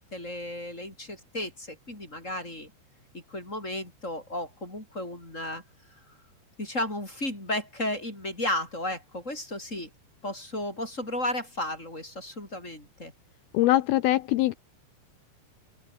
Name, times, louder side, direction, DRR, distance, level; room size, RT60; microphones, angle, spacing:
voice 1, 0.1-2.7 3.3-5.6 6.6-9.9 10.2-13.1, left 1 dB, 15° left, 6.9 m, -33 dB
voice 2, 13.5-14.5, left 15 dB, 80° left, 2.2 m, -22 dB
open air
omnidirectional pair, 5.2 m